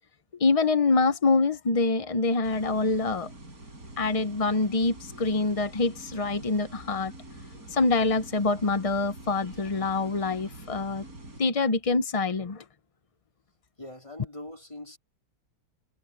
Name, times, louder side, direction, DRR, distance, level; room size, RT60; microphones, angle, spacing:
voice 1, 0.4-3.3 4.0-7.1 7.7-11.0 11.4-12.6, left 3 dB, 50° left, 0.4 m, -25 dB
sound 1, 2.4-11.4, right 2 dB, 55° right, 6.2 m, -46 dB
voice 2, 13.8-15.0, left 1 dB, 15° left, 4.1 m, -42 dB
omnidirectional pair, 1.9 m